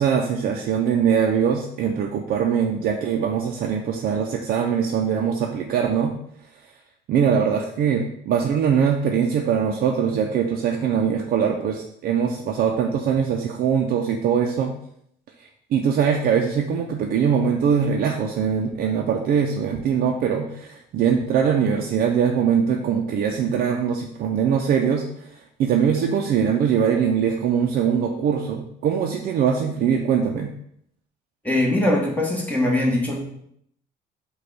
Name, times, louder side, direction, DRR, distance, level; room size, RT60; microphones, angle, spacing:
voice 1, 0.0-6.1 7.1-14.7 15.4-30.5, right 7 dB, 60° right, 2 dB, 0.5 m, -22 dB
voice 2, 31.4-33.2, left 1 dB, 10° left, -2 dB, 1.2 m, -21 dB
4.9 x 2.3 x 4.6 m, 0.70 s
cardioid pair, 110°, 17 cm